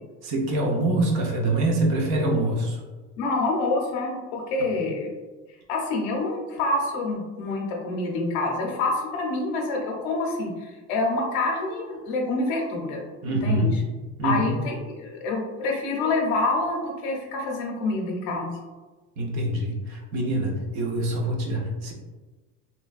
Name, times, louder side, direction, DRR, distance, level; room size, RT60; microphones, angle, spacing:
voice 1, 0.2-2.8 13.2-13.8 14.2-14.6 19.2-21.9, right 1 dB, 55° right, 0 dB, 0.7 m, -25 dB
voice 2, 3.2-5.1 5.7-13.0 13.4-13.8 14.2-18.5, left 2 dB, 75° left, 0 dB, 0.6 m, -27 dB
3.0 x 2.2 x 2.4 m, 1.2 s
cardioid pair, 145°, 34 cm